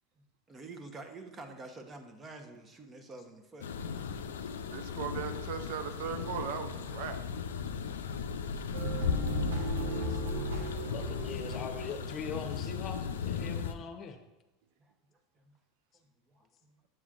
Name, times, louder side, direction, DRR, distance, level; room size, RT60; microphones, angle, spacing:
voice 1, 0.5-4.0 14.8-14.9 15.3-15.5 16.3-16.7, right 3 dB, 25° right, 6 dB, 1.0 m, -48 dB
sound 1, 3.6-13.7, left 6 dB, 85° left, 0.4 m, -36 dB
voice 2, 4.7-7.2, right 7 dB, 70° right, 8 dB, 0.5 m, -38 dB
sound 2, 8.7-13.1, right 2 dB, 85° right, 1.2 m, -38 dB
voice 3, 10.9-14.2, left 6 dB, 40° left, 6 dB, 0.8 m, -41 dB
7.8 x 7.2 x 2.5 m, 1.0 s
hypercardioid pair, 90°, 0 cm